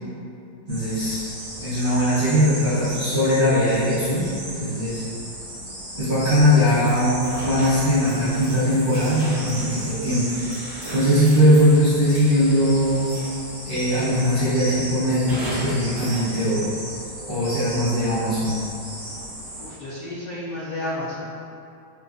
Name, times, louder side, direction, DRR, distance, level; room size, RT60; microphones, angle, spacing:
voice 1, 0.7-1.2 1.6-4.3 4.5-5.0 6.0-10.3 10.9-13.1 13.6-16.7 17.3-18.6, equal, 40° right, -15 dB, 0.8 m, -20 dB
sound 1, 0.7-19.7, right 1 dB, 60° right, 1.8 m, -36 dB
sound 2, 6.8-13.5 13.9-14.5 15.3-16.2, right 1 dB, 75° right, 1.8 m, -38 dB
voice 2, 19.6-21.2, left 1 dB, 75° left, -10 dB, 0.9 m, -31 dB
4.6 x 2.3 x 2.5 m, 2.7 s
omnidirectional pair, 2.3 m